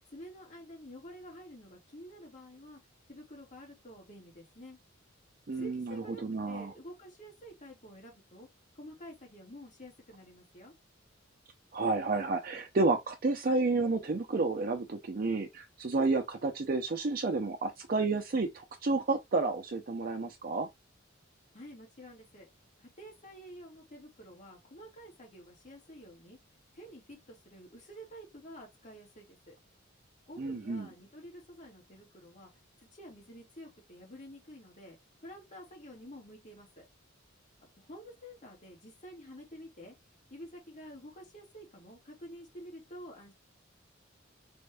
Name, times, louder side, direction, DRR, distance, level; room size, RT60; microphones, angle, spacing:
voice 1, 0.1-2.8 3.1-4.8 5.5-8.5 8.7-10.7 21.5-22.5 22.8-26.4 26.7-29.5 30.3-32.5 32.9-36.9 37.7-39.9 40.3-43.3, equal, 40° left, 1.7 m, -50 dB
voice 2, 5.5-6.7 11.7-20.7 30.4-30.9, right 3 dB, 45° right, 0.6 m, -31 dB
4.2 x 2.6 x 3.3 m
head